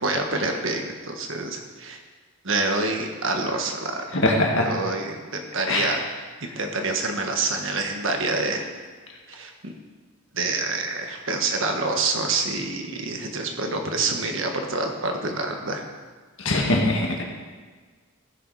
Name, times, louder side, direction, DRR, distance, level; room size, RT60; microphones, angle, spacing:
voice 1, 0.0-2.0 2.4-4.0 4.6-8.8 9.3-9.7 10.3-15.8, right 3 dB, 60° right, 3 dB, 1.4 m, -27 dB
voice 2, 4.1-4.7 5.7-6.0 16.4-17.2, left 2 dB, 60° left, 0 dB, 1.9 m, -22 dB
15.0 x 6.8 x 4.8 m, 1.4 s
head